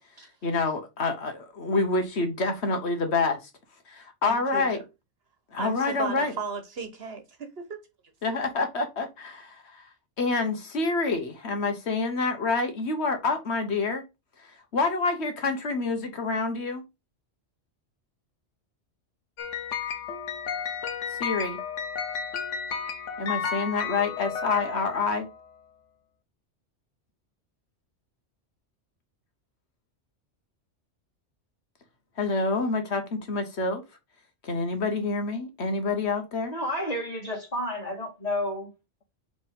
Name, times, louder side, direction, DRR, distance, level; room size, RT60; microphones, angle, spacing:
voice 1, 0.4-3.5 3.9-4.8 5.5-6.3 8.2-9.9 10.2-14.0 14.4-16.8 21.1-21.6 23.2-25.3 32.2-33.8 34.4-36.5, left 3 dB, 65° left, 1.3 m, -27 dB
voice 2, 4.2-4.7 5.6-7.8, right 4 dB, 60° right, 1.3 m, -35 dB
sound 1, 19.4-25.4, left 6 dB, 85° left, 1.2 m, -33 dB
voice 3, 36.5-38.7, left 1 dB, 35° left, 2.5 m, -31 dB
5.1 x 3.6 x 5.1 m
omnidirectional pair, 1.2 m